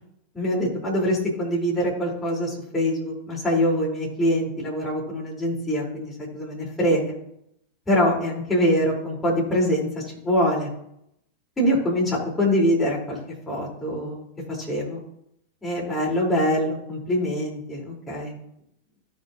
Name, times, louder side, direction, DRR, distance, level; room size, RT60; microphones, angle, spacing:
voice 1, 0.3-7.1 7.9-9.9 10.2-10.7 11.6-13.2 13.5-14.2 14.5-15.0 15.6-18.4, equal, 15° left, -5 dB, 4.6 m, -24 dB
17.0 x 6.1 x 3.0 m, 0.75 s
figure-of-eight pair, 90°, 0 cm